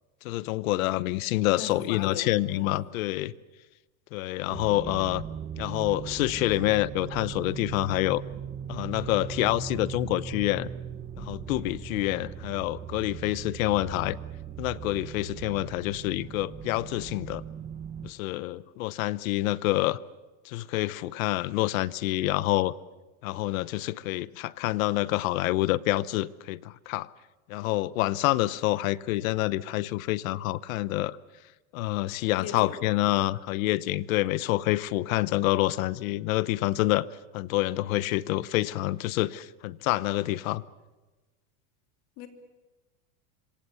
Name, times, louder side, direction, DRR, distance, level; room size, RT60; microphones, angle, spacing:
voice 1, 0.2-3.3 4.1-5.2 5.6-8.2 8.7-10.7 11.2-14.2 14.6-17.4 18.0-20.0 20.4-22.7 23.2-27.1 27.5-31.2 31.7-37.1 37.3-40.6, left 17 dB, 65° left, 1.0 m, -27 dB
voice 2, 1.6-2.8 32.4-32.8 42.2-42.3, left 7 dB, 45° left, 3.3 m, -38 dB
sound 1, 4.5-18.1, right 7 dB, 15° right, 1.1 m, -39 dB
26.5 x 25.0 x 7.1 m
supercardioid pair, 155°, 43 cm